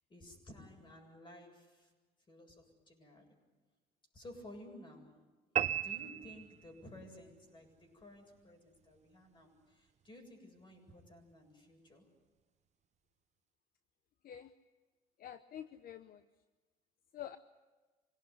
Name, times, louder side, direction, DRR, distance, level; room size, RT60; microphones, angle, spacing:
voice 1, 0.1-1.9 2.3-3.4 4.1-5.2 5.5-12.1, left 1 dB, 30° left, 4 dB, 7.7 m, -55 dB
sound 1, 5.6-7.1, right 10 dB, 40° right, 0.7 m, -35 dB
voice 2, 15.2-16.2 17.1-17.4, left 10 dB, 60° left, 11 dB, 0.9 m, -47 dB
26.0 x 18.5 x 9.8 m, 1.3 s
cardioid pair, 110°, 17 cm